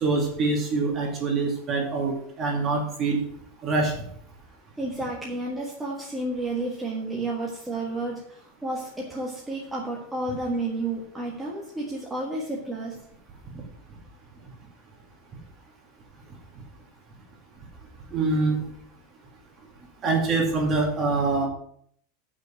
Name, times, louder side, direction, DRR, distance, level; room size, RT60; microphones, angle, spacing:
voice 1, 0.0-3.2 3.6-4.0 18.1-18.6 20.0-21.5, right 3 dB, 25° right, 1 dB, 2.4 m, -24 dB
voice 2, 4.8-12.9, right 2 dB, 5° right, -4 dB, 1.5 m, -31 dB
8.2 x 6.2 x 7.6 m, 0.65 s
supercardioid pair, 175°, 0 cm